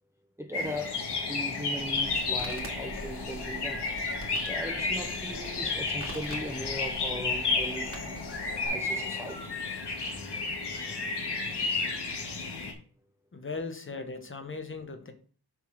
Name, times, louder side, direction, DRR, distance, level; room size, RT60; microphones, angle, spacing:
voice 1, 0.4-3.9 4.5-9.5, equal, 5° right, 0.6 m, -39 dB
sound 1, 0.5-12.7, left 3 dB, 85° left, 1.6 m, -32 dB
sound 2, 0.6-9.4, left 4 dB, 65° left, 1.0 m, -46 dB
Crackle, 1.8-8.7, right 1 dB, 35° right, 2.2 m, -45 dB
voice 2, 13.3-15.1, left 3 dB, 30° left, 0.9 m, -38 dB
7.3 x 3.6 x 6.1 m
wide cardioid pair, 155°, 39 cm